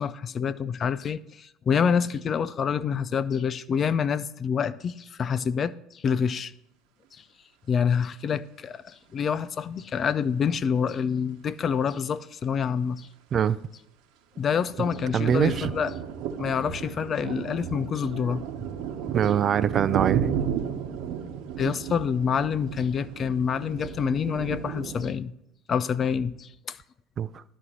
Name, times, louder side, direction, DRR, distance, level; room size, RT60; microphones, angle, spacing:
voice 1, 0.0-6.5 7.1-7.2 7.7-13.1 14.4-15.9 16.4-18.4 21.6-25.3 25.7-26.8, left 7 dB, 40° left, 0.5 m, -27 dB
sound 1, 14.4-25.1, right 8 dB, 65° right, 1.0 m, -33 dB
voice 2, 15.1-15.7 19.1-20.3 27.2-27.4, right 8 dB, 45° right, 0.4 m, -23 dB
12.0 x 4.2 x 7.8 m
hypercardioid pair, 70°, 0 cm